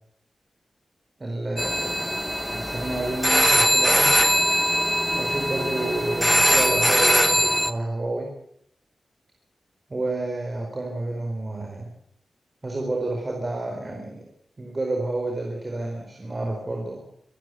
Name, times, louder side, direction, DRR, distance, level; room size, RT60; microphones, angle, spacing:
voice 1, 1.2-2.1 2.5-4.2 5.1-8.3 9.9-11.9 12.6-14.3 14.6-17.0, right 2 dB, 25° right, 1 dB, 4.5 m, -30 dB
sound 1, 1.6-7.7, equal, ahead, 1.1 m, -21 dB
25.5 x 15.0 x 8.2 m, 0.70 s
wide cardioid pair, 170°, 0 cm